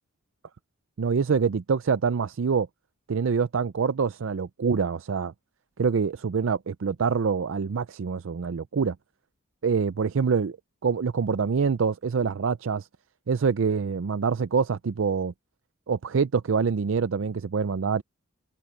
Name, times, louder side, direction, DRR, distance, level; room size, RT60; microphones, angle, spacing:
voice 1, 1.0-2.7 3.1-5.3 5.8-9.0 9.6-10.6 10.8-12.9 13.3-15.3 15.9-18.0, right 5 dB, 65° right, 0.5 m, -25 dB
head